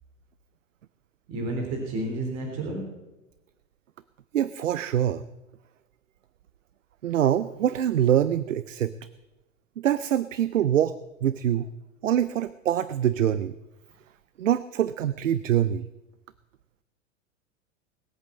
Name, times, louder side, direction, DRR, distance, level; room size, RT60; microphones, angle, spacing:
voice 1, 1.3-2.8, right 2 dB, 40° right, 1 dB, 3.6 m, -30 dB
voice 2, 4.3-5.2 7.0-8.9 9.8-10.9 11.2-11.7 12.0-13.5 14.4-15.8, right 10 dB, 70° right, 16 dB, 0.6 m, -24 dB
20.5 x 8.3 x 7.3 m, 1.0 s
figure-of-eight pair, 95°, 39 cm